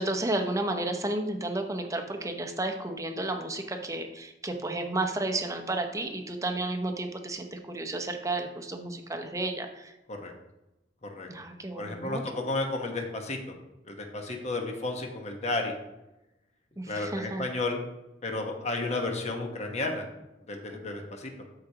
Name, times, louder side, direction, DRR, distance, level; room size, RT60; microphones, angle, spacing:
voice 1, 0.0-9.9 11.3-12.5 16.8-17.5, right 2 dB, 20° right, 5 dB, 0.8 m, -32 dB
voice 2, 11.8-13.4 13.8-15.7 16.9-17.8 18.2-20.1 20.5-21.3, left 2 dB, 40° left, 2 dB, 1.2 m, -32 dB
12.5 x 4.9 x 2.9 m, 0.95 s
head